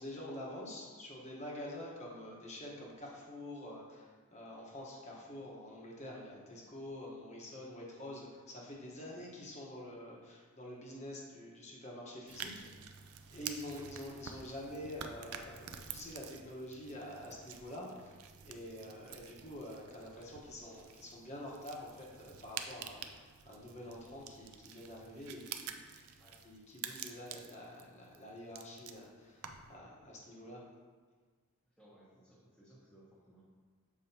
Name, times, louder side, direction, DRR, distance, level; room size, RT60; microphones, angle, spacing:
voice 1, 0.0-13.0 13.3-26.2 26.4-30.6, left 1 dB, 30° left, -3 dB, 1.1 m, -47 dB
sound 1, 12.3-29.8, right 8 dB, 80° right, 0.4 m, -49 dB
voice 2, 31.7-33.4, right 1 dB, ahead, -12 dB, 1.0 m, -62 dB
7.0 x 4.9 x 2.8 m, 1.5 s
head